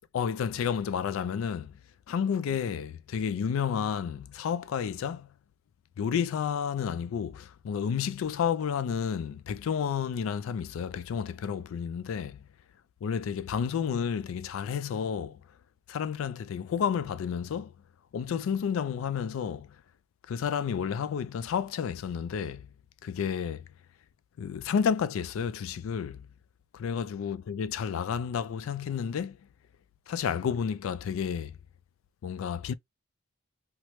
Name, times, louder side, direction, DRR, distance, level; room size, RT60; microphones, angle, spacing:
voice 1, 0.1-1.8 2.1-5.3 6.0-12.5 13.0-15.4 15.9-17.7 18.1-19.8 20.3-22.7 23.0-23.7 24.4-26.3 26.7-29.4 30.1-31.6 32.2-32.7, left 7 dB, 80° left, 0.3 m, -31 dB
2.9 x 2.0 x 3.1 m
head